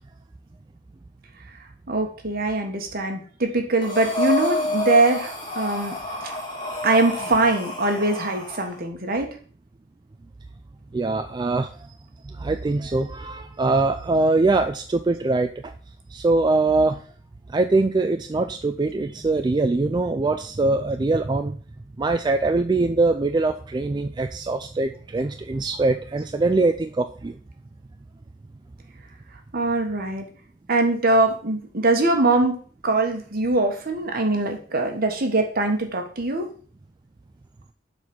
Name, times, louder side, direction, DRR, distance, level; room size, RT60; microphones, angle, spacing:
voice 1, 1.9-5.9 6.2-6.3 6.8-9.3 29.5-30.3 30.7-32.6 32.8-36.4, right 2 dB, 50° right, 4 dB, 1.5 m, -22 dB
Breathing, 3.8-8.7, left 2 dB, 25° left, 2.1 m, -29 dB
voice 2, 10.9-11.7 12.4-15.7 16.1-17.0 17.5-21.6 22.0-27.3, right 3 dB, 25° right, 7 dB, 0.4 m, -22 dB
7.2 x 4.1 x 6.1 m, 0.43 s
head